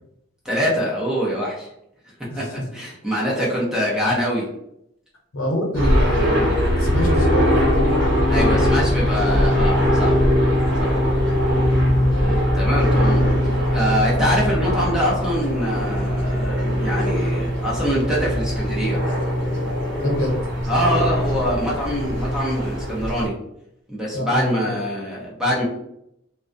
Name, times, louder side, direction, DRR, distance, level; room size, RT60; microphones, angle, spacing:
voice 1, 0.4-1.7 2.4-2.5 2.7-4.5 8.3-10.2 10.8-10.9 12.2-19.0 20.7-23.3 23.9-25.6, equal, 5° right, -6 dB, 0.6 m, -24 dB
voice 2, 5.3-7.9 11.9-12.2 20.0-20.4 24.1-24.8, left 1 dB, 90° left, -1 dB, 0.8 m, -25 dB
sound 1, 5.7-23.3, equal, 55° right, 1.0 m, -20 dB
2.3 x 2.1 x 2.5 m, 0.78 s
head